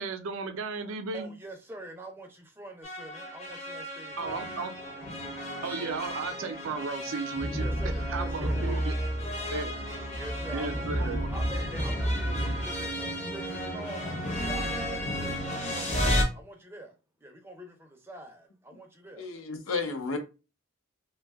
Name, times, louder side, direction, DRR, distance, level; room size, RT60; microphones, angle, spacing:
voice 1, 0.0-1.3 4.2-4.7 5.6-7.6 8.1-8.9 9.5-9.7 10.5-11.3, right 4 dB, 75° right, 0.4 m, -34 dB
voice 2, 1.1-4.5 7.6-8.7 10.1-10.8 11.3-16.9 17.2-19.3, right 1 dB, 10° right, 0.5 m, -45 dB
sound 1, 2.8-16.2, equal, 35° left, 0.7 m, -32 dB
voice 3, 19.2-20.2, left 4 dB, 80° left, 0.6 m, -32 dB
2.6 x 2.2 x 3.3 m
head